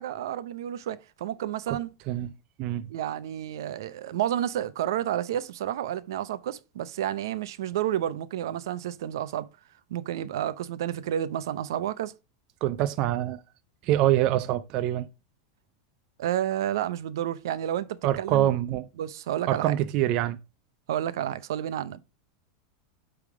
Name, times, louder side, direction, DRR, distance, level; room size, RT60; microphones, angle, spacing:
voice 1, 0.0-1.9 2.9-9.5 9.9-12.1 16.2-18.5 19.0-19.7 20.9-22.0, right 11 dB, 75° right, 0.6 m, -30 dB
voice 2, 2.6-2.9 12.6-13.4 13.8-15.1 18.0-18.9 19.5-20.4, right 13 dB, 35° right, 0.4 m, -25 dB
8.4 x 3.6 x 4.7 m
supercardioid pair, 170°, 2 cm